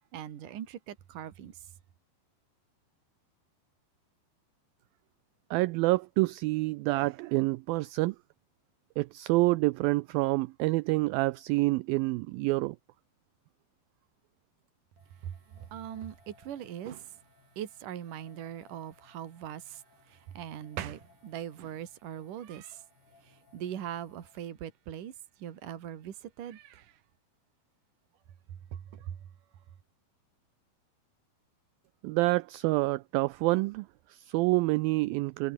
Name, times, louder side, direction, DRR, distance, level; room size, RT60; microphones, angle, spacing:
voice 1, 0.1-1.6 15.2-17.2 17.6-22.8 23.2-25.1 25.4-26.9 28.7-29.2, right 10 dB, 55° right, 3.5 m, -41 dB
voice 2, 5.5-8.2 9.0-12.8 32.0-35.5, right 21 dB, 90° right, 2.0 m, -27 dB
sound 1, 15.0-24.5, left 4 dB, 75° left, 9.9 m, -64 dB
omnidirectional pair, 4.7 m